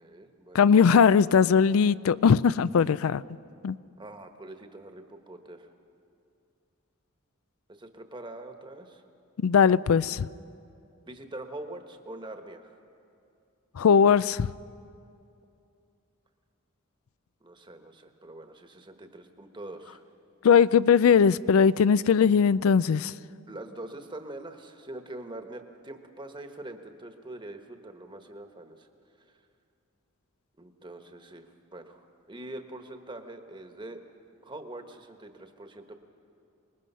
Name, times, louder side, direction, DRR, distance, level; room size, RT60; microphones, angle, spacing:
voice 1, 0.0-1.0 4.0-5.7 7.7-9.0 11.0-12.7 17.4-20.1 21.9-22.0 23.5-28.9 30.6-31.5 31.7-34.0 34.4-36.0, right 1 dB, 20° right, 1.2 m, -43 dB
voice 2, 0.5-3.2 3.6-3.8 9.4-10.3 13.8-14.5 20.4-23.1, left 6 dB, 75° left, 0.4 m, -20 dB
26.0 x 20.5 x 5.6 m
head